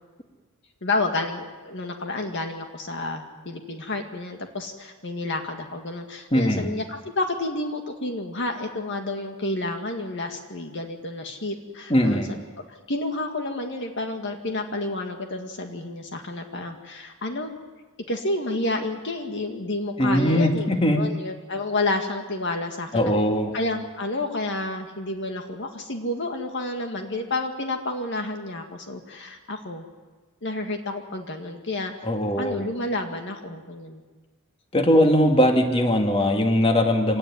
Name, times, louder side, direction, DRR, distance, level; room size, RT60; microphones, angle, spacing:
voice 1, 0.8-12.4 12.9-17.5 18.1-20.7 20.9-23.1 23.5-29.8 30.4-31.9 32.4-34.0, left 2 dB, 55° left, 4 dB, 2.0 m, -30 dB
voice 2, 6.3-6.7 11.9-12.3 20.0-21.0 22.9-23.5 32.0-32.6 34.7-37.2, equal, 25° left, 3 dB, 2.3 m, -20 dB
25.0 x 18.0 x 9.7 m, 1.3 s
head